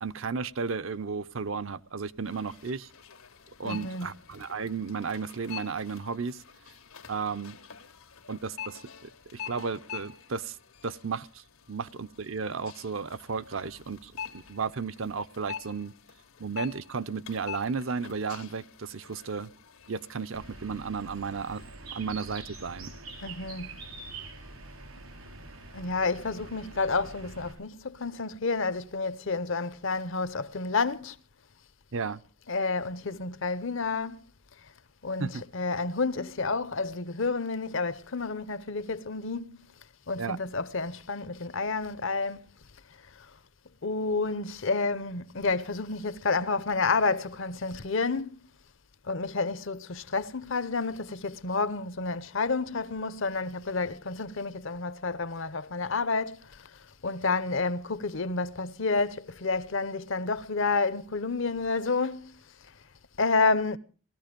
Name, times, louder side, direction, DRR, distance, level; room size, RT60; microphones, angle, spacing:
voice 1, 0.0-2.9 3.6-6.4 7.1-7.6 8.3-10.6 10.8-11.3 11.7-15.9 16.4-19.5 19.9-21.6 21.9-22.9 31.9-32.2 35.2-35.4 40.2-40.4, right 5 dB, 70° right, 0.7 m, -34 dB
sound 1, 2.2-21.7, left 8 dB, 90° left, 1.8 m, -46 dB
voice 2, 3.6-4.1 23.2-23.7 25.7-31.2 32.5-34.2 35.0-39.6 40.1-42.4 43.2-43.3 43.8-48.4 49.1-56.7 57.0-62.4 63.2-63.8, left 4 dB, 65° left, 0.9 m, -30 dB
Bird, 20.3-27.5, right 3 dB, 85° right, 4.2 m, -45 dB
18.5 x 14.0 x 5.2 m
head